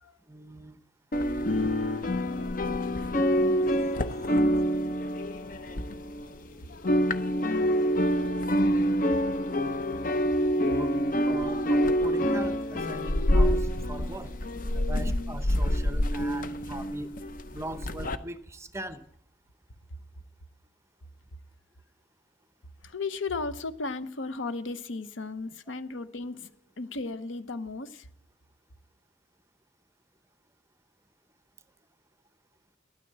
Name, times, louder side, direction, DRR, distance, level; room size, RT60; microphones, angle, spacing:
voice 1, 0.3-0.8 3.8-4.4 6.5-6.6 10.7-11.0 11.2-14.4 14.7-17.1 17.5-19.0, right 1 dB, 15° right, 0.7 m, -40 dB
sound 1, 1.1-6.5 6.7-18.2, equal, 45° left, 0.7 m, -26 dB
voice 2, 22.8-26.5 26.8-28.1, left 3 dB, 80° left, 0.8 m, -35 dB
12.5 x 9.4 x 8.4 m
head